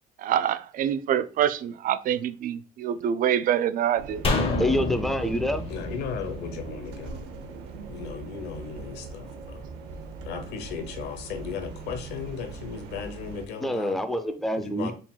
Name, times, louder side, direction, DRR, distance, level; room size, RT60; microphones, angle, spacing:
voice 1, 0.2-4.2, right 10 dB, 55° right, 0.4 m, -26 dB
sound 1, 4.0-13.5, right 3 dB, 85° right, 0.8 m, -40 dB
sound 2, 4.2-7.6 7.9-8.0, left 2 dB, 35° left, 0.9 m, -29 dB
voice 2, 4.6-5.7 13.6-14.9, left 1 dB, ahead, 0.5 m, -26 dB
voice 3, 5.7-7.5 7.8-9.6 10.2-14.0 14.6-14.9, left 6 dB, 85° left, 0.9 m, -36 dB
4.3 x 3.9 x 2.3 m
cardioid pair, 110°, 17 cm